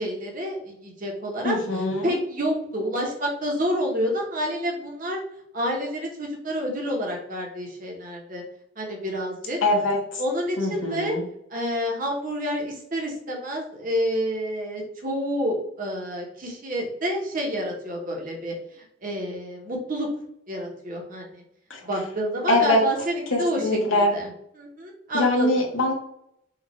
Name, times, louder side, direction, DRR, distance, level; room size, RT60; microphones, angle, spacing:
voice 1, 0.0-5.2 5.5-8.4 8.8-9.6 10.2-11.1 11.5-20.1 20.5-21.4 21.8-24.3 24.6-25.5, equal, 40° right, 0 dB, 1.0 m, -29 dB
voice 2, 1.4-2.2 9.6-10.2 10.6-11.2 21.7-21.8 22.5-22.8 23.3-24.1 25.1-25.9, left 1 dB, 75° left, -1 dB, 1.2 m, -23 dB
5.0 x 2.5 x 3.1 m, 0.74 s
head